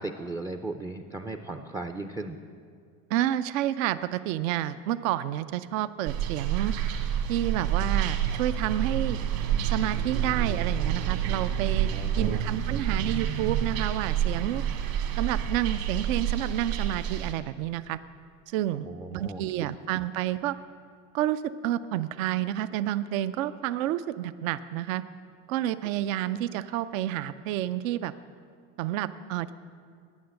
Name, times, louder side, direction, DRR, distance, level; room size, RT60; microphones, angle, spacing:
voice 1, 0.0-2.4 11.9-12.6 18.8-19.4, right 2 dB, 10° right, 7 dB, 0.3 m, -36 dB
voice 2, 3.1-6.7 7.3-9.2 9.6-11.9 12.2-14.6 15.2-18.0 18.5-20.6 21.1-25.0 25.5-28.1 28.8-29.5, right 12 dB, 75° right, 13 dB, 0.5 m, -29 dB
sound 1, 6.1-17.3, right 9 dB, 60° right, 1.4 m, -28 dB
9.5 x 9.2 x 7.6 m, 2.2 s
supercardioid pair, 100°, 40 cm